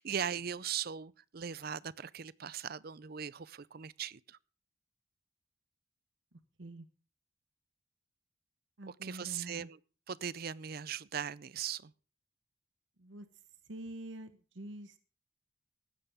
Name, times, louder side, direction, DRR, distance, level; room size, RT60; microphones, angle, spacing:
voice 1, 0.0-4.4 8.9-9.8 10.1-11.9, right 8 dB, 50° right, 0.5 m, -39 dB
voice 2, 8.8-9.7 13.0-13.3 13.7-15.0, right 1 dB, 70° right, 1.1 m, -46 dB
16.0 x 12.5 x 3.6 m
head